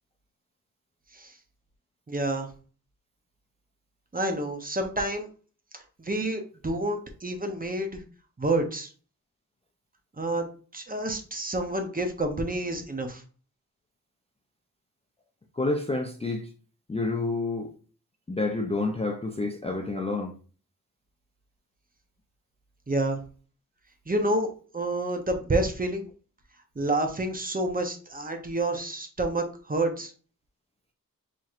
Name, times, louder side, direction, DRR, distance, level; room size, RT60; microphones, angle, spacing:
voice 1, 2.1-2.5 4.1-5.3 5.7-8.0 8.4-8.9 10.2-13.2 22.9-23.2 24.1-26.0 26.8-30.1, right 1 dB, 25° right, 0.7 m, -29 dB
voice 2, 15.5-16.5 16.9-17.7 18.3-20.4, left 3 dB, 20° left, 0.4 m, -29 dB
4.4 x 3.0 x 2.4 m
wide cardioid pair, 115°, 34 cm